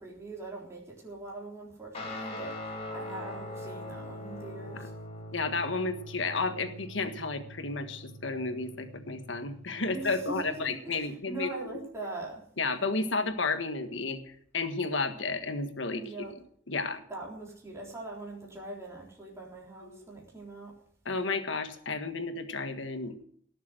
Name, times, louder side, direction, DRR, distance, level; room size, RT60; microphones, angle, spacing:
voice 1, 0.0-4.9 9.9-12.4 16.0-16.3 17.1-20.7, right 2 dB, 15° right, -3 dB, 3.9 m, -42 dB
Guitar, 1.9-10.7, left 1 dB, 35° left, 3.1 m, -43 dB
voice 2, 5.3-11.8 12.6-14.2 14.5-16.0 16.7-17.0 19.8-20.1 21.0-23.1, left 3 dB, 90° left, 8 dB, 1.6 m, -32 dB
18.0 x 7.3 x 7.7 m, 0.62 s
head